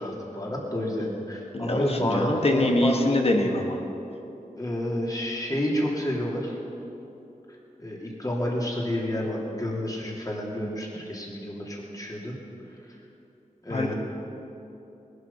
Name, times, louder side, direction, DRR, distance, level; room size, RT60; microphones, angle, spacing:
voice 1, 0.0-3.0 4.5-6.6 7.8-12.4 12.9-13.0 13.6-13.9, left 1 dB, 25° left, -3 dB, 3.1 m, -29 dB
voice 2, 1.5-3.8 13.7-13.9, left 1 dB, 45° left, 2 dB, 1.5 m, -24 dB
20.0 x 11.5 x 5.7 m, 2.9 s
wide cardioid pair, 105°, 14 cm